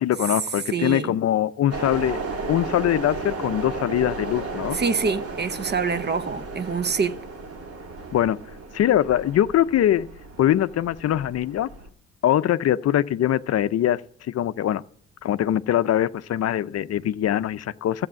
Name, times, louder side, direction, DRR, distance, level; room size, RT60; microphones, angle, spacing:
voice 1, 0.0-4.8 8.1-8.4 8.7-10.1 10.4-11.7 12.2-14.0 14.3-14.8 15.2-18.1, left 11 dB, 55° left, 0.6 m, -22 dB
voice 2, 0.7-1.2 4.7-7.2, right 5 dB, 35° right, 0.8 m, -26 dB
sound 1, 1.7-11.9, right 3 dB, 50° right, 2.0 m, -34 dB
13.5 x 8.4 x 7.5 m
cardioid pair, 90°, 30 cm